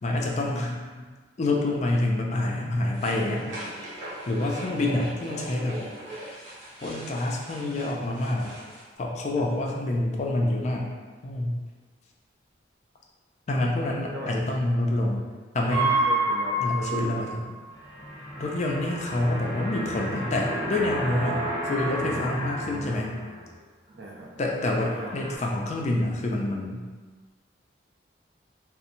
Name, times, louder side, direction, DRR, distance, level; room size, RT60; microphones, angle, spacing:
voice 1, 0.0-1.0 1.4-3.4 4.3-5.8 6.8-8.5 9.0-10.8 11.2-11.6 13.5-15.2 15.5-15.9 16.6-17.4 18.4-23.2 24.4-26.8, left 1 dB, 40° left, -1 dB, 0.3 m, -27 dB
sound 1, 2.9-8.8, right 1 dB, 85° right, 0.9 m, -40 dB
voice 2, 13.5-13.8 14.1-14.3 16.0-17.3 22.6-23.0 24.0-24.3 24.6-25.1, right 1 dB, 65° right, -2 dB, 0.5 m, -39 dB
sound 2, 15.7-23.5 23.9-24.3 24.7-25.4, right 1 dB, 35° right, 0.8 m, -30 dB
2.8 x 2.0 x 2.6 m, 1.4 s
head